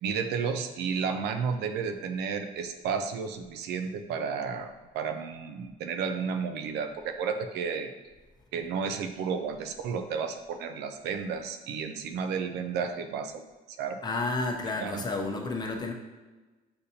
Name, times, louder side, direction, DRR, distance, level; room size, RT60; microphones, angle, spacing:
voice 1, 0.0-7.9 8.5-13.4 13.8-14.0 14.8-15.0, right 6 dB, 80° right, 6 dB, 0.5 m, -32 dB
voice 2, 14.0-15.9, left 3 dB, 25° left, 1 dB, 0.6 m, -31 dB
6.6 x 2.7 x 2.7 m, 1.2 s
cardioid pair, 110°, 17 cm